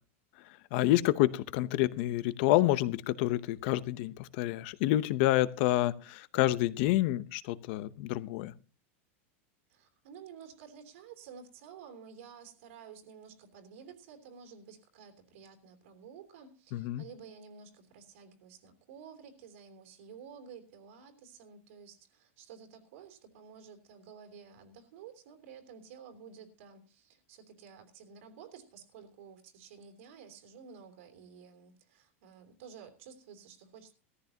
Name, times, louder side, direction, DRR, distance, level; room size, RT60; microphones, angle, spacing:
voice 1, 0.7-8.5 16.7-17.0, left 15 dB, 55° left, 0.8 m, -28 dB
voice 2, 9.7-33.9, right 7 dB, 75° right, 3.2 m, -52 dB
18.5 x 14.0 x 2.9 m
supercardioid pair, 155°, 7 cm